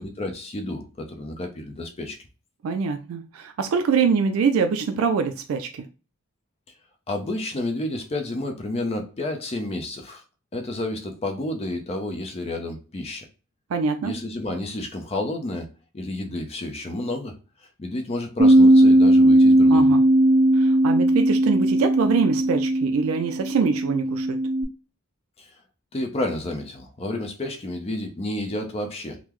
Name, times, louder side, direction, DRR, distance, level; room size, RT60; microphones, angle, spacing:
voice 1, 0.0-2.2 7.1-10.2 10.5-13.3 14.0-15.7 15.9-17.4 17.8-19.9 25.4-25.5 25.9-29.2, left 1 dB, 30° left, 0.5 m, -30 dB
voice 2, 2.6-5.9 13.7-14.1 19.7-20.0 20.6-24.4, right 5 dB, 80° right, 0.3 m, -24 dB
Bass guitar, 18.4-24.6, right 1 dB, 35° right, 0.8 m, -17 dB
3.7 x 2.0 x 3.0 m
head